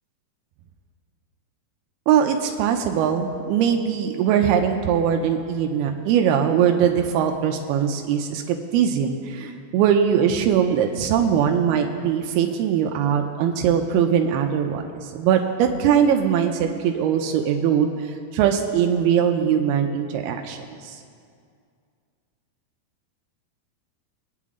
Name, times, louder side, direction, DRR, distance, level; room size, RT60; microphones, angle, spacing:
voice 1, 2.1-21.0, right 8 dB, 90° right, 4 dB, 2.7 m, -21 dB
23.0 x 9.3 x 3.7 m, 2.2 s
omnidirectional pair, 4.4 m